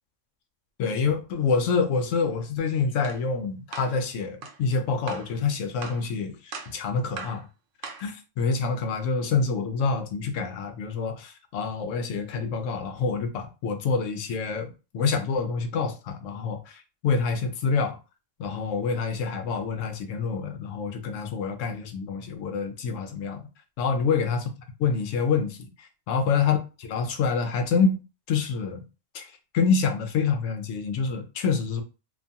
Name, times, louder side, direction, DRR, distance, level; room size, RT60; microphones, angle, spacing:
voice 1, 0.8-7.5 8.0-18.0 18.4-23.4 23.8-24.5 24.8-25.7 26.1-28.0 28.3-28.8 29.1-29.3 29.5-31.8, left 5 dB, 80° left, 0.9 m, -27 dB
sound 1, 3.0-3.2 3.7-4.0 4.4-4.6 5.1-5.3 5.8-6.1 6.5-6.8 7.2-7.4 7.8-8.1, right 5 dB, 60° right, 0.6 m, -39 dB
2.6 x 2.3 x 2.7 m
omnidirectional pair, 1.3 m